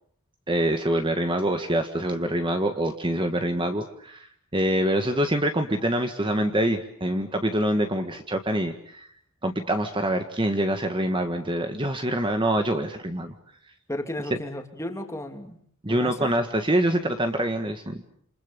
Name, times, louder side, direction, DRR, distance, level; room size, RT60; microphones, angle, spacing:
voice 1, 0.5-4.3 4.5-9.0 9.4-13.3 15.8-18.1, right 1 dB, 20° right, 6 dB, 1.7 m, -25 dB
voice 2, 13.9-15.6 15.9-16.3, left 1 dB, 15° left, 5 dB, 2.8 m, -34 dB
28.5 x 28.0 x 6.9 m, 0.64 s
head